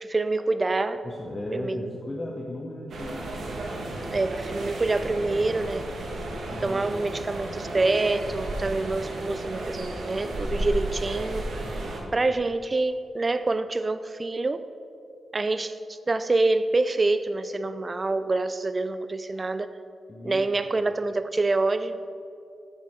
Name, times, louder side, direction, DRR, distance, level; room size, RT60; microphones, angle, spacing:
voice 1, 0.0-1.0 1.5-1.9 4.1-5.9 6.6-11.6 12.1-14.6 15.3-19.7 20.2-22.0, right 3 dB, 35° right, 11 dB, 0.4 m, -26 dB
voice 2, 1.0-3.3 6.5-6.9 11.6-12.2 20.1-20.5, left 1 dB, 25° left, -1 dB, 0.9 m, -36 dB
sound 1, 2.9-12.0, right 1 dB, 70° right, 1.4 m, -33 dB
9.8 x 6.8 x 4.5 m, 2.6 s
cardioid pair, 65°, 0 cm